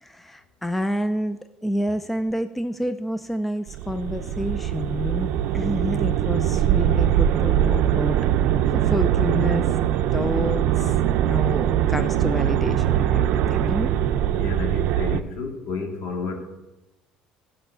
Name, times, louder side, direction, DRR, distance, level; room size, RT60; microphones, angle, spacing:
voice 1, 0.0-5.3 5.5-8.2 8.7-9.7 10.0-10.9 11.2-13.9, left 1 dB, 5° left, 10 dB, 0.4 m, -28 dB
sound 1, 3.7-15.2, right 11 dB, 65° right, 0.5 m, -22 dB
voice 2, 14.3-16.5, left 4 dB, 60° left, 3 dB, 2.1 m, -31 dB
14.0 x 5.5 x 6.6 m, 1.1 s
cardioid pair, 140°, 3 cm